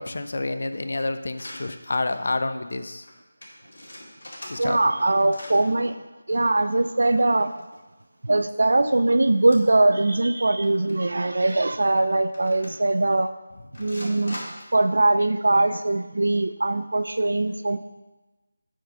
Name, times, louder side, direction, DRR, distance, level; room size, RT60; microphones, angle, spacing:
voice 1, 0.0-3.1 4.5-4.8, left 2 dB, 55° left, 9 dB, 0.6 m, -28 dB
sound 1, 1.3-1.6 2.1-2.3 2.6-2.7 2.9-3.1 3.4-5.0 5.2-5.6 7.0-8.0 8.5-8.6 9.4-9.8 10.1-10.2 10.6-10.9 11.5-11.6 12.3-13.0 13.7-14.8, left 1 dB, 70° left, 2.5 m, -42 dB
voice 2, 4.6-6.0 6.3-7.5 8.2-13.3 13.8-14.4 14.7-17.8, right 2 dB, 65° right, 10 dB, 0.4 m, -21 dB
7.5 x 4.7 x 5.5 m, 1.1 s
figure-of-eight pair, 175°, 0 cm